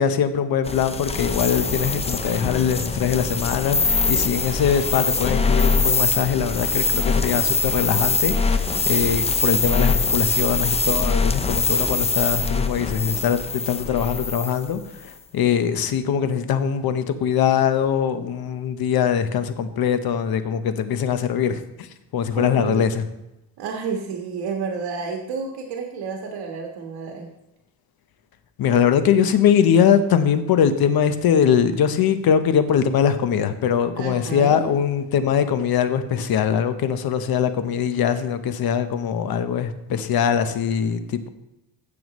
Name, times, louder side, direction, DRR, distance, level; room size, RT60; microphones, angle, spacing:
voice 1, 0.0-21.9 22.1-23.0 28.6-41.3, left 8 dB, 60° left, 10 dB, 1.0 m, -22 dB
sound 1, 0.6-14.7, left 3 dB, 15° left, 0.5 m, -23 dB
voice 2, 22.4-23.0 23.6-27.3 33.9-34.7, right 5 dB, 90° right, 1 dB, 1.6 m, -30 dB
16.0 x 7.1 x 3.1 m, 0.92 s
cardioid pair, 135°, 41 cm